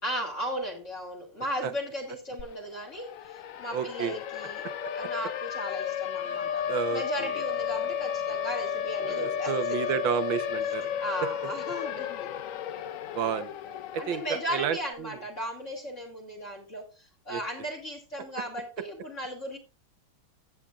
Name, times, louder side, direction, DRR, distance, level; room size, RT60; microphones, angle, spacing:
voice 1, 0.0-4.7 4.9-6.7 6.9-10.0 11.0-12.3 13.7-19.6, equal, 40° left, 4 dB, 2.4 m, -36 dB
Siren, 2.4-2.5 2.8-14.8, left 9 dB, 65° left, 0.8 m, -33 dB
voice 2, 3.7-4.1 4.6-4.7 6.2-6.4 6.7-7.4 9.0-10.9 13.1-13.5 13.9-15.2 17.3-17.4, right 8 dB, 75° right, 10 dB, 1.8 m, -31 dB
14.5 x 8.5 x 2.5 m, 0.31 s
omnidirectional pair, 2.1 m